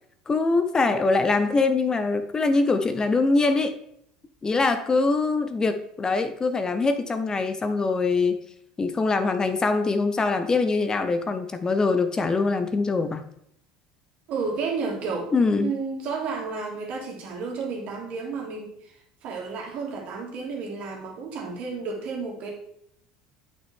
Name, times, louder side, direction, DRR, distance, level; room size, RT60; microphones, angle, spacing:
voice 1, 0.3-3.8 4.4-8.4 8.8-13.2 15.3-15.7, left 3 dB, 25° left, 9 dB, 0.8 m, -23 dB
voice 2, 14.3-15.3 15.6-18.9 19.2-22.5, right 4 dB, 55° right, 0 dB, 2.4 m, -32 dB
8.5 x 6.1 x 3.6 m, 0.71 s
hypercardioid pair, 75°, 3 cm